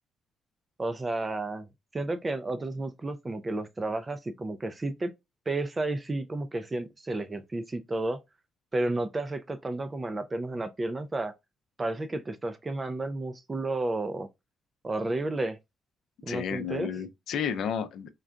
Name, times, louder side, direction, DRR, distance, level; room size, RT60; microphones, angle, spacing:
voice 1, 0.8-1.7 1.9-5.1 5.5-8.2 8.7-11.3 11.8-14.3 14.8-15.6 16.2-16.9, right 2 dB, 25° right, 0.3 m, -32 dB
voice 2, 16.3-18.1, left 7 dB, 75° left, 0.4 m, -32 dB
3.7 x 2.2 x 2.4 m
cardioid pair, 90°, 0 cm